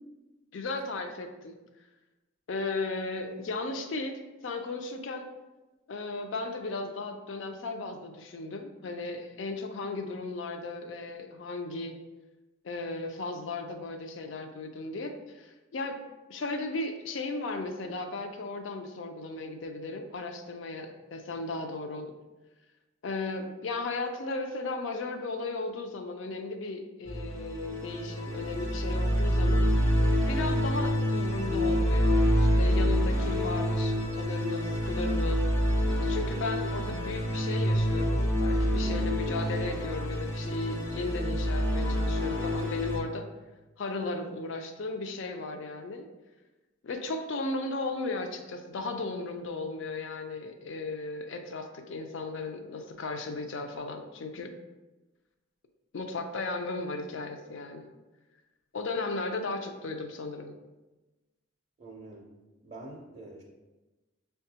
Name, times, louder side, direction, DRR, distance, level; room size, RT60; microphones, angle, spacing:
voice 1, 0.5-1.5 2.5-5.3 5.9-12.0 12.6-16.0 16.3-22.1 23.0-29.7 30.3-35.4 36.0-43.3 43.8-46.1 46.8-54.5 55.9-57.8 58.7-60.5, left 3 dB, 60° left, 6 dB, 0.4 m, -36 dB
sound 1, 27.1-43.0, equal, 75° left, 0.8 m, -27 dB
voice 2, 61.8-62.3 62.6-63.4, right 2 dB, 35° right, -1 dB, 0.5 m, -45 dB
6.4 x 2.3 x 2.8 m, 1.1 s
head